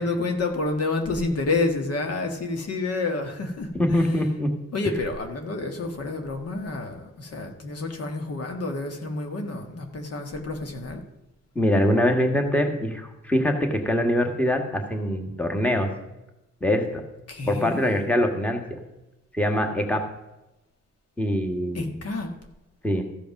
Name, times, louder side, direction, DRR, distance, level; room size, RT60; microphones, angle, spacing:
voice 1, 0.0-4.2 4.7-11.0 17.3-18.0 21.7-22.3, left 3 dB, 55° left, 5 dB, 1.5 m, -29 dB
voice 2, 3.8-4.5 11.6-15.9 16.6-17.0 17.5-18.6 19.3-20.0 21.2-21.9 22.8-23.0, equal, 5° left, 4 dB, 1.6 m, -23 dB
14.5 x 5.2 x 5.9 m, 0.96 s
cardioid pair, 90°, 30 cm